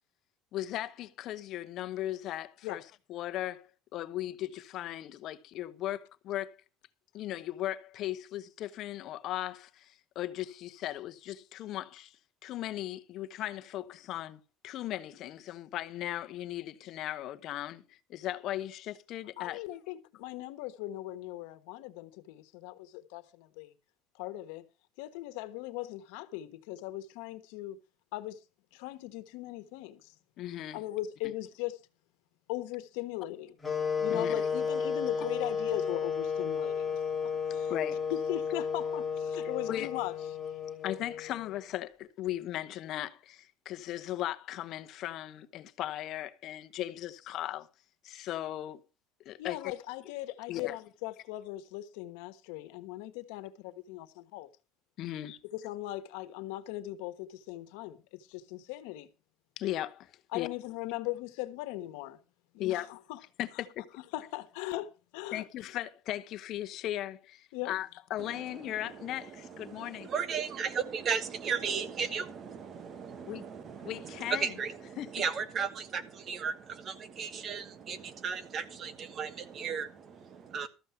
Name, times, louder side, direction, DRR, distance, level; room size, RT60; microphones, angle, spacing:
voice 1, 0.5-6.6 7.1-19.6 30.4-30.8 31.2-31.3 34.1-34.5 35.2-35.3 37.7-38.0 39.7-39.9 40.8-47.7 48.0-48.8 49.2-49.7 50.5-50.8 55.0-55.4 59.6-60.5 62.6-62.9 63.4-63.9 65.3-70.1 73.3-73.4 73.8-74.5 75.0-75.1, left 13 dB, 55° left, 0.9 m, -37 dB
voice 2, 19.4-23.7 24.2-24.6 25.0-27.8 28.1-28.4 28.7-30.1 30.7-31.8 32.5-33.5 34.0-37.7 38.1-40.1 49.4-54.5 55.5-59.1 60.3-62.2 62.5-63.2 64.1-65.5 67.5-67.7, left 16 dB, 85° left, 1.3 m, -39 dB
sound 1, 33.6-41.6, left 6 dB, 10° left, 2.6 m, -33 dB
voice 3, 68.2-80.7, right 6 dB, 35° right, 1.3 m, -36 dB
13.5 x 7.4 x 5.7 m
cardioid pair, 130°, 0 cm